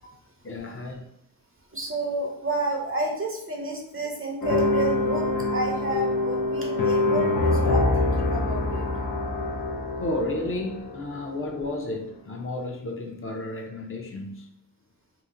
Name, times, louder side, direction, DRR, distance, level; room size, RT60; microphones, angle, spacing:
voice 1, 0.4-1.0 10.0-14.5, left 2 dB, 35° left, 0.6 m, -32 dB
voice 2, 1.7-8.9, right 2 dB, 35° right, 0.6 m, -30 dB
sound 1, 4.4-11.5, left 2 dB, 85° left, 0.6 m, -25 dB
2.8 x 2.1 x 3.7 m
wide cardioid pair, 80°, 35 cm